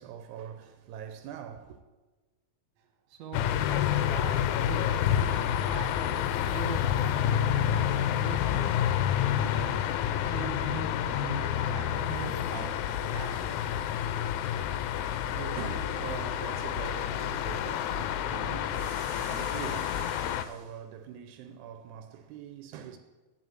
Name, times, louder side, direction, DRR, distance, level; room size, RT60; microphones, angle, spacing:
voice 1, 0.0-1.8 14.7-23.0, right 8 dB, 90° right, 2.1 m, -43 dB
voice 2, 3.1-6.2 6.5-8.8 9.1-9.8 10.2-12.7 13.1-13.6, right 6 dB, 70° right, 2.4 m, -42 dB
sound 1, 3.3-20.5, left 10 dB, 80° left, 1.9 m, -29 dB
10.5 x 4.6 x 7.8 m
omnidirectional pair, 3.3 m